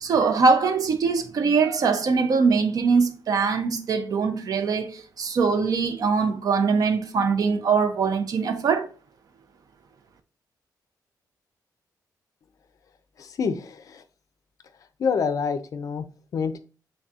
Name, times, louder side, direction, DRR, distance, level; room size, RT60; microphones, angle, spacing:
voice 1, 0.0-8.9, right 5 dB, 55° right, 0.5 m, -22 dB
voice 2, 13.2-14.0 15.0-16.1 16.3-16.6, left 6 dB, 50° left, 0.4 m, -27 dB
3.9 x 3.4 x 2.4 m
wide cardioid pair, 150°, 7 cm